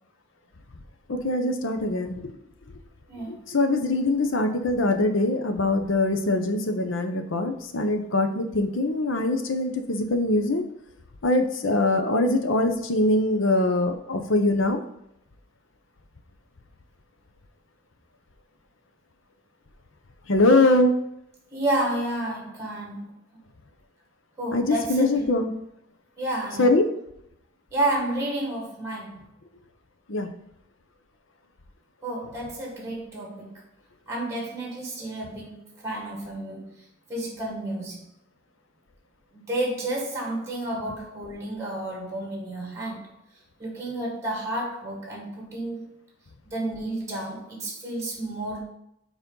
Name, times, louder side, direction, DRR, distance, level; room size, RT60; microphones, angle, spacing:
voice 1, 1.1-2.3 3.3-10.6 11.2-14.8 20.3-20.9 24.5-25.5 26.6-26.9 30.1-30.3, left 2 dB, 80° left, 0.8 m, -23 dB
voice 2, 21.5-23.1 24.4-25.3 26.2-26.7 27.7-29.2 32.0-33.6 34.1-36.7 37.1-38.0 39.3-43.1 43.6-45.9 46.4-48.6, right 1 dB, 15° right, 1.6 m, -31 dB
6.9 x 4.3 x 3.9 m
head